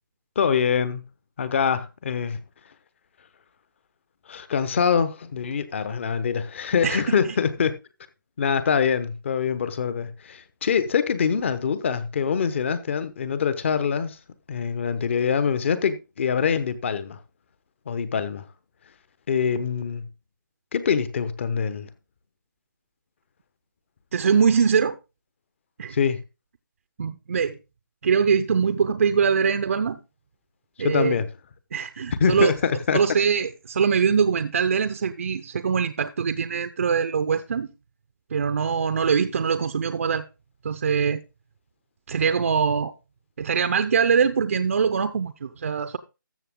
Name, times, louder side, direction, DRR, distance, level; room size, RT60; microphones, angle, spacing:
voice 1, 0.3-1.0 1.4-2.4 4.3-7.7 8.4-14.2 14.5-17.2 17.9-18.5 19.3-20.1 20.7-21.9 25.9-26.2 30.8-31.3 32.2-33.0, left 6 dB, 35° left, 1.1 m, -24 dB
voice 2, 6.8-7.3 24.1-25.0 25.8-26.0 27.0-27.6 28.0-30.0 30.8-31.1 31.7-32.5 32.9-37.7 38.3-40.3 40.6-41.2 42.1-42.9 43.4-46.0, right 6 dB, 40° right, 0.6 m, -23 dB
13.5 x 7.0 x 3.7 m
figure-of-eight pair, 160°, 11 cm